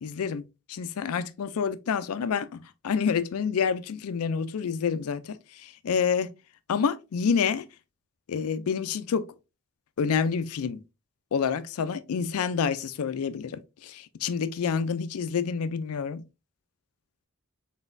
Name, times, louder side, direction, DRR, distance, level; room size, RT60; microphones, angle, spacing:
voice 1, 0.0-0.4 0.7-6.3 6.7-7.6 8.3-9.3 10.0-10.8 11.3-16.2, left 6 dB, 80° left, 0.4 m, -28 dB
4.0 x 3.9 x 2.6 m
head